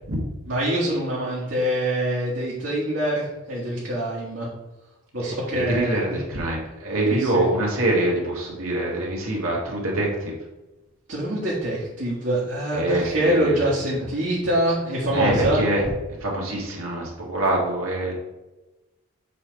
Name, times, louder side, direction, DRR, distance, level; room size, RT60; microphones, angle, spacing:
voice 1, 0.5-4.5 5.1-6.0 7.1-7.5 11.1-15.6, right 1 dB, 55° right, -7 dB, 1.4 m, -24 dB
voice 2, 5.2-10.3 12.7-13.6 15.1-15.8 16.2-18.1, right 1 dB, 85° right, -2 dB, 1.8 m, -25 dB
6.9 x 3.3 x 4.5 m, 1.0 s
head